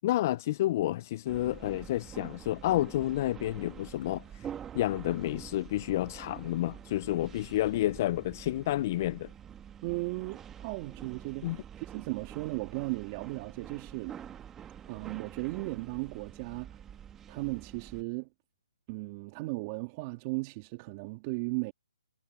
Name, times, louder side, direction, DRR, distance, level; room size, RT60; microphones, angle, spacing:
voice 1, 0.0-9.3 11.4-11.6, left 14 dB, 35° left, 0.4 m, -30 dB
sound 1, 1.3-18.0, right 9 dB, 10° right, 1.3 m, -47 dB
voice 2, 9.8-14.2 14.9-16.8 17.3-18.3 18.9-21.7, right 24 dB, 25° right, 2.2 m, -36 dB
hypercardioid pair, 155°, 3 cm